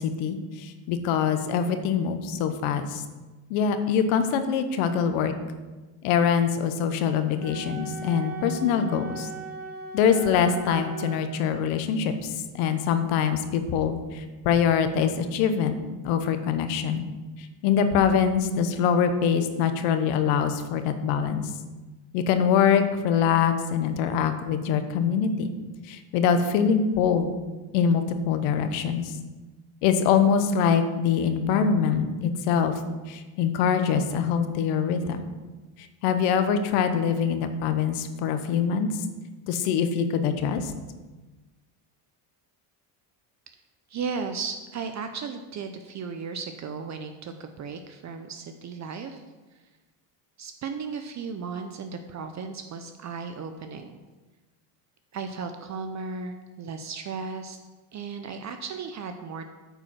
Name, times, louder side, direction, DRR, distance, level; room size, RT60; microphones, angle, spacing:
voice 1, 0.0-3.0 3.5-5.3 6.0-9.3 9.9-15.8 16.0-17.0 17.6-21.5 22.1-25.5 25.9-27.3 27.7-29.1 29.8-32.7 33.1-35.2 36.0-38.9 39.5-40.7, left 7 dB, 80° left, 9 dB, 1.1 m, -24 dB
Wind instrument woodwind instrument, 7.4-11.3, right 4 dB, 20° right, 1.8 m, -38 dB
voice 2, 43.9-49.2 50.4-53.9 55.1-57.6 57.9-59.5, right 5 dB, 35° right, 7 dB, 0.6 m, -35 dB
8.9 x 5.0 x 5.9 m, 1.2 s
cardioid pair, 115°, 48 cm